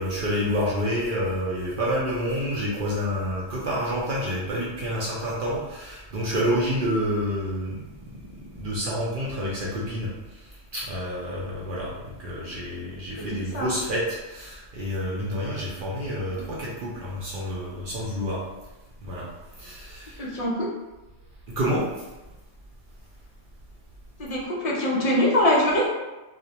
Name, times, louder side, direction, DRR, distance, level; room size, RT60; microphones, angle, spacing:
voice 1, 0.0-7.7 8.5-10.1 10.7-18.4 19.0-19.3 19.6-20.3 21.6-21.9, equal, 60° right, -6 dB, 0.6 m, -28 dB
voice 2, 13.2-13.7 20.2-20.7 24.2-25.9, left 1 dB, 50° left, -4 dB, 0.4 m, -23 dB
2.3 x 2.1 x 2.7 m, 1.1 s
omnidirectional pair, 1.3 m